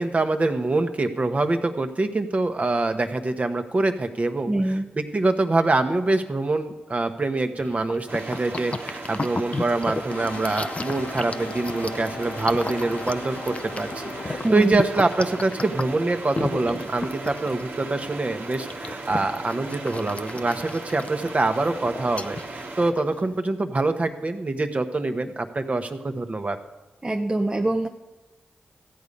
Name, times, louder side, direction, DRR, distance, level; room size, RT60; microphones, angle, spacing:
voice 1, 0.0-26.6, right 2 dB, 40° right, 7 dB, 1.2 m, -25 dB
voice 2, 4.5-4.8 14.4-14.8 27.0-27.9, right 1 dB, 20° right, 3 dB, 0.8 m, -23 dB
sound 1, 7.6-23.4, left 3 dB, 35° left, 0.6 m, -35 dB
sound 2, 8.1-22.9, right 3 dB, 65° right, 1.5 m, -37 dB
sound 3, 10.1-14.5, left 4 dB, 70° left, 0.9 m, -38 dB
14.0 x 8.4 x 5.4 m, 1.1 s
supercardioid pair, 45°, 4 cm